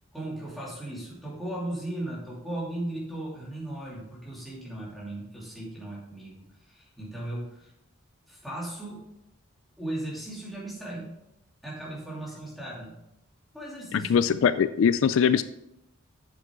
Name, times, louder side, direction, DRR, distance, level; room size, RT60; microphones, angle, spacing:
voice 1, 0.1-7.7 8.3-9.1 9.8-11.1 11.6-13.0 13.5-14.1, right 1 dB, ahead, -6 dB, 2.7 m, -37 dB
voice 2, 13.9-15.4, left 7 dB, 70° left, 14 dB, 0.3 m, -22 dB
8.3 x 7.1 x 3.7 m, 0.84 s
head